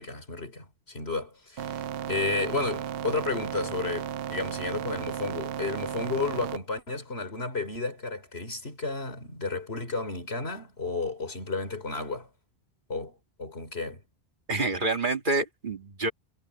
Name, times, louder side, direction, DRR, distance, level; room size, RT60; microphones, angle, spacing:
voice 1, 0.0-12.3 12.9-14.0, left 3 dB, 85° left, 3.8 m, -32 dB
sound 1, 1.6-6.6, right 10 dB, 70° right, 0.8 m, -34 dB
voice 2, 14.5-16.1, right 3 dB, 50° right, 2.1 m, -27 dB
omnidirectional pair, 1.0 m